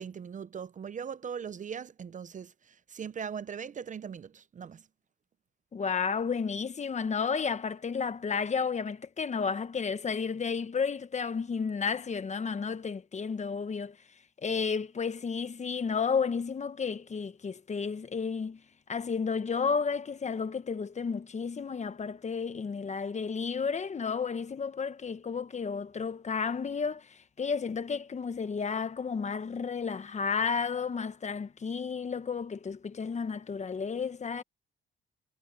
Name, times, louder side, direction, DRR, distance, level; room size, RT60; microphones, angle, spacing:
voice 1, 0.0-4.9, right 7 dB, 40° right, 0.6 m, -40 dB
voice 2, 5.7-14.0 14.4-18.6 18.9-34.4, left 5 dB, 35° left, 1.2 m, -32 dB
cardioid pair, 90°, 20 cm